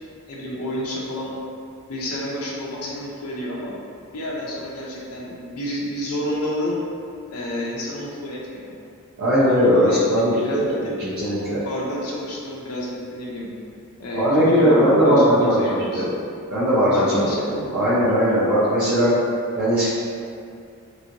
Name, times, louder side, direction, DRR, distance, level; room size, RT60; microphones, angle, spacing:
voice 1, 0.3-1.3 1.9-3.7 4.1-6.8 7.3-8.7 9.4-11.0 11.6-13.5 14.0-16.0 16.9-17.5, left 1 dB, 85° left, -4 dB, 0.6 m, -30 dB
voice 2, 9.2-11.6 14.1-16.1 16.5-19.1 19.5-19.9, equal, 70° right, -13 dB, 0.8 m, -19 dB
3.0 x 2.8 x 2.6 m, 2.3 s
head